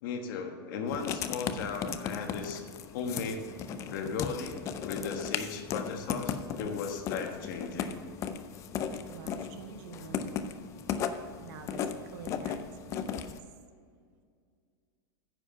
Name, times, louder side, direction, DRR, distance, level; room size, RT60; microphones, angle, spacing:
voice 1, 0.0-2.7 2.9-3.4 3.9-8.0, left 5 dB, 55° left, 4 dB, 1.3 m, -36 dB
Writing, 0.9-13.4, left 7 dB, 25° left, 0.4 m, -36 dB
voice 2, 8.9-10.5 11.4-11.8 12.1-13.3, right 6 dB, 50° right, 6 dB, 0.9 m, -47 dB
9.7 x 4.9 x 6.9 m, 2.1 s
supercardioid pair, 160°, 13 cm